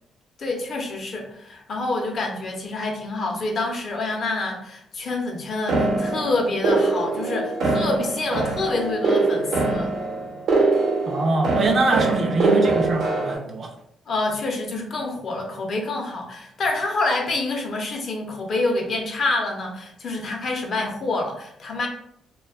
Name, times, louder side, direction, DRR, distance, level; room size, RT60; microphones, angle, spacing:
voice 1, 0.4-9.9 14.1-21.9, left 2 dB, 55° left, 2 dB, 0.6 m, -27 dB
sound 1, 5.7-13.4, right 3 dB, 80° right, 0.8 m, -23 dB
voice 2, 11.1-13.7, right 3 dB, 45° right, 3 dB, 0.4 m, -23 dB
2.5 x 2.2 x 2.3 m, 0.71 s
cardioid pair, 90°, 0 cm